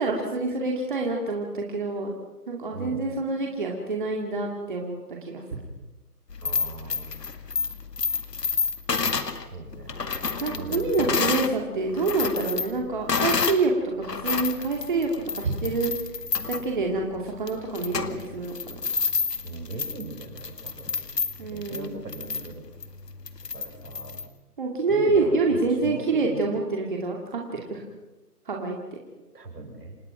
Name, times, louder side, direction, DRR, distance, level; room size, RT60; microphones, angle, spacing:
voice 1, 0.0-2.1 2.5-5.0 10.4-15.1 15.4-15.9 16.5-18.8 21.4-21.9 24.6-27.8 28.5-28.8, right 3 dB, 30° right, 0 dB, 2.6 m, -26 dB
voice 2, 2.7-3.0 6.4-7.1 9.5-9.9 10.5-11.6 19.4-21.1 21.4-22.7 23.5-24.2 24.9-26.6 29.3-30.0, right 3 dB, 75° right, 3 dB, 7.3 m, -39 dB
sound 1, 6.3-11.5 11.9-13.7 14.0-24.3, left 5 dB, 80° left, 2.2 m, -29 dB
28.0 x 18.0 x 6.1 m, 1.1 s
hypercardioid pair, 175°, 48 cm